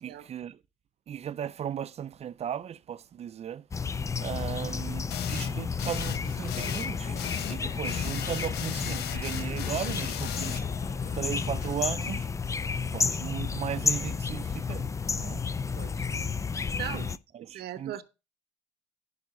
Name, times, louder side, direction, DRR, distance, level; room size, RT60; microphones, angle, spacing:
voice 1, 0.0-0.6 1.1-3.7 4.2-10.9 11.1-12.3 12.9-15.4 16.9-17.1 17.3-18.0, right 9 dB, 40° right, 0.5 m, -36 dB
sound 1, 3.7-17.2, left 5 dB, 20° left, 0.4 m, -32 dB
sound 2, 5.1-5.5 5.8-6.2 6.5-6.9 7.2-7.6 7.8-10.6, left 10 dB, 75° left, 0.9 m, -36 dB
sound 3, 5.9-12.2, left 6 dB, 55° left, 1.2 m, -46 dB
voice 2, 15.7-16.1 16.7-17.1 17.4-18.0, right 12 dB, 70° right, 0.9 m, -39 dB
11.0 x 5.2 x 5.1 m
cardioid pair, 110°, 17 cm